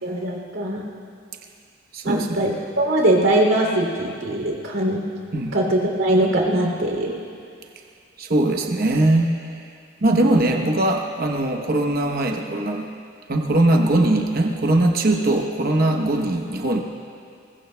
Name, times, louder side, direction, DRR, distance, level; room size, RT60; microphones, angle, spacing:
voice 1, 0.0-0.8 2.1-5.0 5.5-7.1, right 1 dB, 80° right, 0 dB, 2.8 m, -21 dB
voice 2, 1.9-2.4 5.3-5.6 8.2-9.6 10.0-12.9 13.3-16.8, right 1 dB, 50° right, 2 dB, 0.9 m, -20 dB
23.0 x 21.0 x 2.2 m, 2.3 s
head